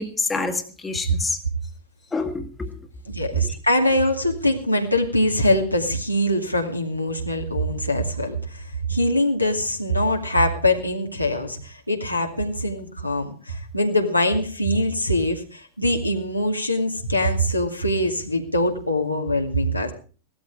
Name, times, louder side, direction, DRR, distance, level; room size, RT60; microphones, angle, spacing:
voice 1, 0.0-1.4 2.1-2.8 3.4-3.6, left 3 dB, 15° left, 6 dB, 1.8 m, -27 dB
voice 2, 3.1-8.6 8.9-19.9, left 1 dB, 90° left, 1 dB, 2.5 m, -23 dB
17.5 x 13.0 x 4.8 m, 0.39 s
figure-of-eight pair, 90°, 0 cm